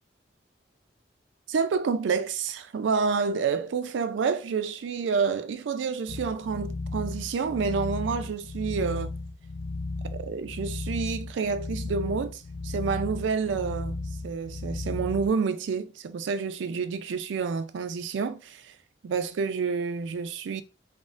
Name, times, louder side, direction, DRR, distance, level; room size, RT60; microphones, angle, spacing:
voice 1, 1.5-9.1 10.1-14.0 14.2-18.7 19.0-20.6, right 5 dB, 85° right, 0.4 m, -29 dB
sound 1, 6.1-15.3, left 3 dB, 55° left, 0.3 m, -35 dB
3.5 x 2.0 x 2.5 m
head